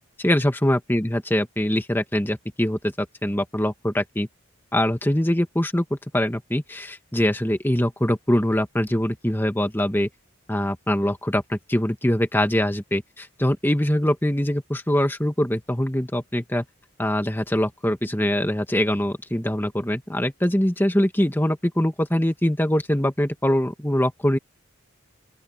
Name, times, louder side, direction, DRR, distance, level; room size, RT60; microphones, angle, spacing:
voice 1, 0.2-4.3 4.7-10.1 10.5-16.6 17.0-24.4, equal, 10° left, 1.6 m, -23 dB
open air
head